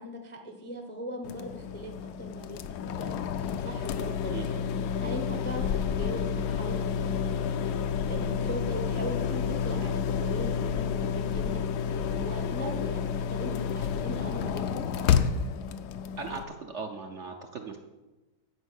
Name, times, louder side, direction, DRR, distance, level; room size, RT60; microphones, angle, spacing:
voice 1, 0.0-4.7 5.0-7.4 8.1-11.6 11.9-14.9, equal, 10° left, 3 dB, 0.5 m, -39 dB
sound 1, 1.2-16.4, left 7 dB, 75° left, 1.1 m, -30 dB
voice 2, 16.2-17.8, right 4 dB, 55° right, 4 dB, 0.9 m, -38 dB
10.0 x 5.2 x 8.1 m, 1.1 s
omnidirectional pair, 1.9 m